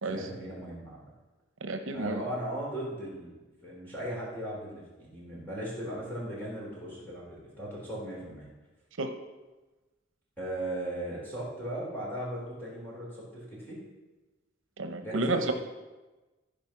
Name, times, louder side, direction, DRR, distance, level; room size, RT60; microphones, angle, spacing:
voice 1, 0.0-1.1 1.9-8.5 10.4-13.8 15.0-15.5, right 1 dB, 10° left, -6 dB, 3.5 m, -37 dB
voice 2, 1.6-2.2 9.0-9.1 14.8-15.5, right 2 dB, 75° right, 7 dB, 0.8 m, -30 dB
14.5 x 5.1 x 5.8 m, 1.2 s
head